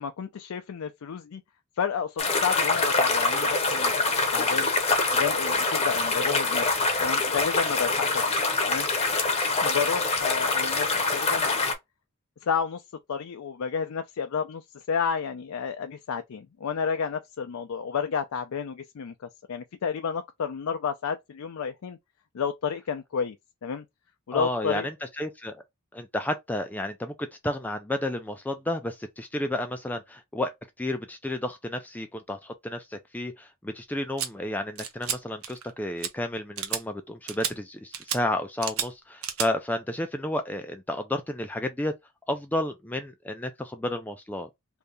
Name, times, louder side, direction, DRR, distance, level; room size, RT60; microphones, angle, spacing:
voice 1, 0.0-1.4 1.8-4.7 5.1-6.7 7.0-8.2 8.6-8.9 9.6-11.7 12.4-12.8 13.1-19.1 19.5-22.0 22.3-23.4 23.6-23.8 24.3-24.9, left 6 dB, 80° left, 0.4 m, -31 dB
sound 1, 2.2-11.7, left 3 dB, 30° left, 0.7 m, -25 dB
voice 2, 24.3-25.6 25.9-30.5 30.8-41.9 42.3-44.5, left 1 dB, 10° left, 0.3 m, -31 dB
sound 2, 34.2-34.3 34.8-35.2 35.4-35.7 36.0-36.1 36.6-36.8 37.3-37.5 37.9-38.2 38.6-38.9 39.2-39.5, right 8 dB, 75° right, 0.7 m, -31 dB
2.8 x 2.6 x 3.3 m
head